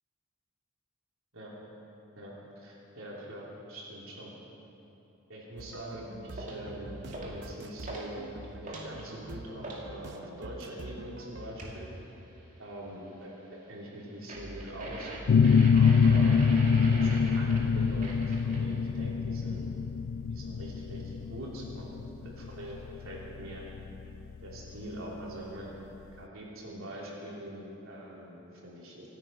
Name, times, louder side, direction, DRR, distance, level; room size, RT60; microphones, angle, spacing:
voice 1, 2.1-4.3 5.3-8.3 8.6-11.9 12.6-13.3 13.7-15.1 15.7-16.5 16.8-19.7 20.3-21.9 22.2-23.7 24.4-25.7 26.1-29.1, right 1 dB, 70° right, -4 dB, 3.4 m, -43 dB
sound 1, 5.6-11.5, right 2 dB, 50° right, 0.7 m, -45 dB
sound 2, 6.4-6.6 7.1-7.5 7.8-8.1 8.4-9.9 11.6-11.8 14.3-18.7, right 1 dB, 35° right, 2.3 m, -41 dB
sound 3, 15.3-24.7, left 6 dB, 65° left, 0.4 m, -25 dB
26.0 x 9.3 x 5.7 m, 3.0 s
head